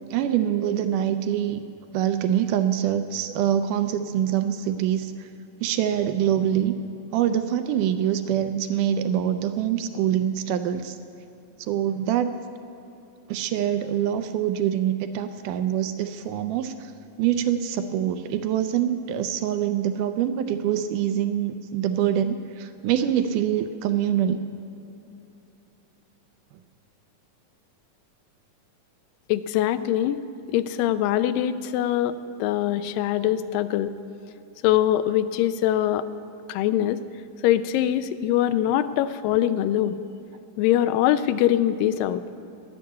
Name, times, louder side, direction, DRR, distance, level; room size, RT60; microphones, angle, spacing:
voice 1, 0.1-1.6 1.9-5.3 5.6-6.7 7.1-11.0 11.6-12.4 13.3-16.9 17.2-24.4 33.2-33.4, right 10 dB, 80° right, 9 dB, 2.0 m, -25 dB
voice 2, 29.3-30.2 30.5-32.1 32.4-33.9 34.6-36.1 36.5-37.0 37.4-40.0 40.6-42.2, left 12 dB, 85° left, 13 dB, 2.3 m, -23 dB
11.5 x 11.0 x 8.3 m, 2.8 s
omnidirectional pair, 3.9 m